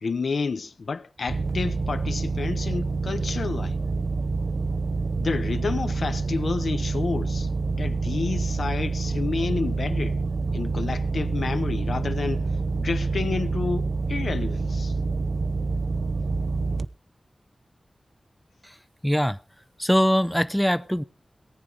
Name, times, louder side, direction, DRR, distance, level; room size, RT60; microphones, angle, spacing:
voice 1, 0.0-3.8 5.2-7.5 7.7-10.2 10.5-14.9, left 4 dB, 85° left, 1.0 m, -30 dB
sound 1, 1.2-16.8, right 3 dB, 65° right, 0.7 m, -27 dB
voice 2, 19.0-19.4 19.8-21.0, equal, 5° left, 0.6 m, -22 dB
18.5 x 9.8 x 5.2 m
wide cardioid pair, 85°, 0 cm